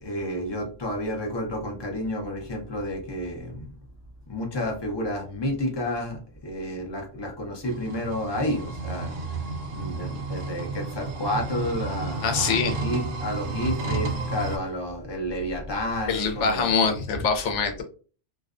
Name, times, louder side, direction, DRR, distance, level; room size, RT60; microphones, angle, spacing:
voice 1, 0.0-3.7 4.3-16.7, left 1 dB, 40° left, 2 dB, 0.4 m, -31 dB
sound 1, 7.6-14.6, right 3 dB, 70° right, 0.9 m, -31 dB
voice 2, 12.2-12.8 16.1-17.8, left 5 dB, 80° left, 5 dB, 0.9 m, -24 dB
2.5 x 2.1 x 2.4 m, 0.38 s
omnidirectional pair, 1.2 m